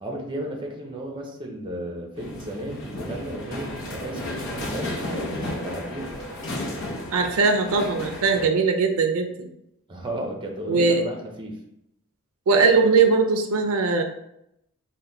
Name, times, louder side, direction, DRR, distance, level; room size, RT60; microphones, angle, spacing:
voice 1, 0.0-6.1 9.9-11.6, right 1 dB, 25° right, 1 dB, 0.6 m, -34 dB
sound 1, 2.2-8.5, left 1 dB, 60° left, 0.7 m, -33 dB
voice 2, 7.1-9.5 10.7-11.0 12.5-14.0, right 4 dB, 75° right, 5 dB, 0.4 m, -20 dB
4.2 x 2.2 x 3.8 m, 0.78 s
head